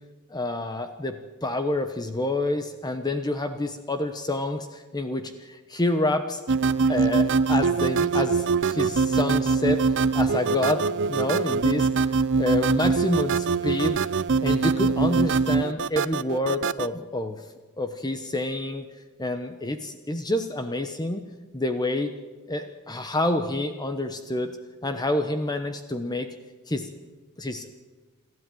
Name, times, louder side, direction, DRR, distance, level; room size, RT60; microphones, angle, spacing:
voice 1, 0.3-6.4 6.9-11.9 12.3-14.0 14.4-17.4 17.8-18.8 19.2-21.2 21.5-22.1 22.5-24.5 24.8-26.3 26.7-26.9 27.4-27.7, left 1 dB, 20° left, 8 dB, 1.0 m, -28 dB
sound 1, 6.5-16.9, right 4 dB, 55° right, 0.7 m, -23 dB
28.0 x 13.0 x 9.2 m, 1.3 s
head